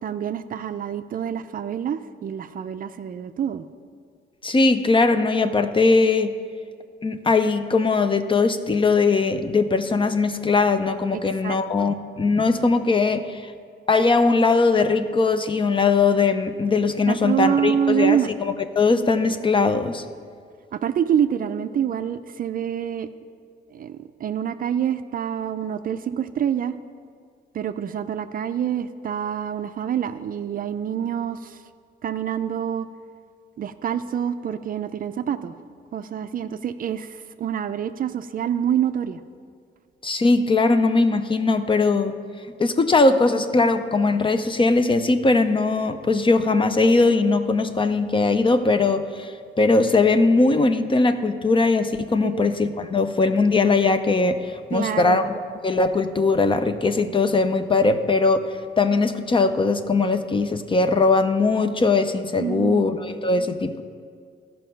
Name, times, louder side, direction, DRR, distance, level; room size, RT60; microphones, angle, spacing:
voice 1, 0.0-3.7 11.1-11.9 17.1-18.3 20.7-23.1 23.7-26.7 27.5-31.6 32.0-32.9 33.6-35.5 35.9-39.2 52.2-52.5 54.7-55.2 62.4-62.8, right 9 dB, 45° right, 10 dB, 0.4 m, -26 dB
voice 2, 4.4-6.4 7.0-13.5 13.9-20.0 40.0-42.2 42.6-55.3 55.6-63.8, left 3 dB, 25° left, 10 dB, 0.6 m, -20 dB
13.5 x 5.3 x 5.6 m, 2.2 s
cardioid pair, 90°, 20 cm